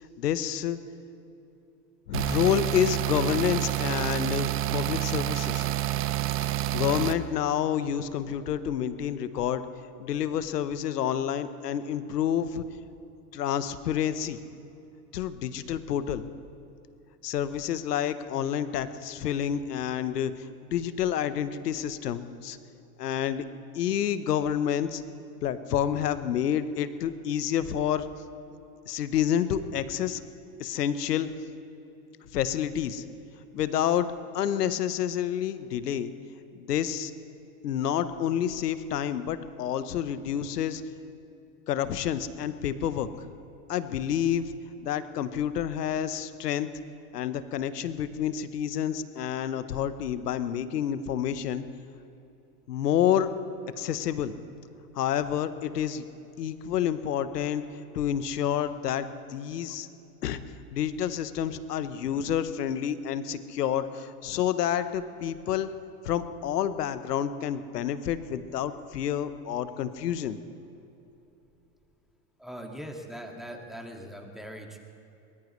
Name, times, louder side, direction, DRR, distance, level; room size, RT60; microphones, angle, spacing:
voice 1, 0.2-0.8 2.1-5.7 6.4-9.6 10.0-12.6 13.3-14.4 15.1-16.2 17.2-22.6 23.0-23.4 23.7-25.0 25.4-28.1 28.9-30.2 30.6-31.3 32.3-33.0 33.5-36.1 36.5-37.1 37.6-40.8 41.7-43.1 43.7-44.5 44.8-46.7 47.1-51.6 52.7-53.3 53.8-54.3 54.9-56.0 56.4-57.6 57.9-59.9 60.2-60.4 60.7-65.7 66.0-70.4, left 9 dB, 90° left, 12 dB, 1.0 m, -29 dB
sound 1, 2.1-7.1, right 14 dB, 30° right, 0.6 m, -28 dB
voice 2, 72.4-74.8, equal, ahead, 2 dB, 1.9 m, -41 dB
23.0 x 19.5 x 3.2 m, 2.9 s
hypercardioid pair, 105°, 46 cm